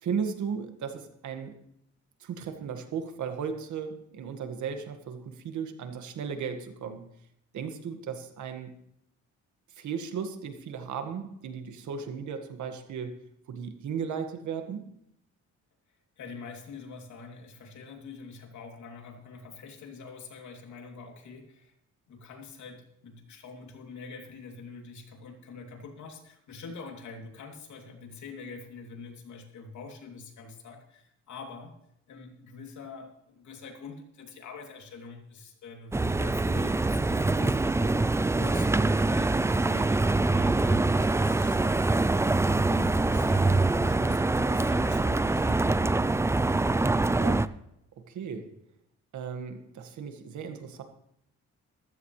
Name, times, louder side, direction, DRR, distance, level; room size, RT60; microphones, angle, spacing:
voice 1, 0.0-1.6 2.2-7.0 7.5-8.7 9.8-14.9 47.1-47.6 48.0-48.6 49.1-50.8, right 6 dB, 70° right, 6 dB, 1.9 m, -36 dB
voice 2, 16.2-21.7 22.1-31.7 32.1-46.2, left 4 dB, 70° left, 2 dB, 3.1 m, -45 dB
sound 1, 35.9-47.5, right 2 dB, 10° right, 0.4 m, -24 dB
14.5 x 14.0 x 3.3 m, 0.75 s
cardioid pair, 90°, 30 cm